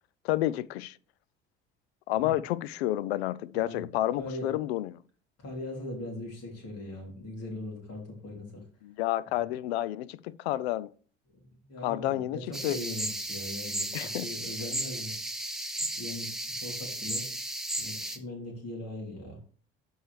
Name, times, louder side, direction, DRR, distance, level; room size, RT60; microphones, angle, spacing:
voice 1, 0.2-1.0 2.1-5.0 8.8-10.9 11.8-12.8 13.9-14.3, left 14 dB, 80° left, 0.5 m, -30 dB
voice 2, 3.5-4.5 5.4-8.6 11.3-15.1 16.0-17.2 17.8-19.4, left 1 dB, 50° left, 3.2 m, -40 dB
sound 1, 12.5-18.2, right 1 dB, ahead, 1.3 m, -35 dB
12.0 x 4.6 x 3.2 m
hypercardioid pair, 65°, 31 cm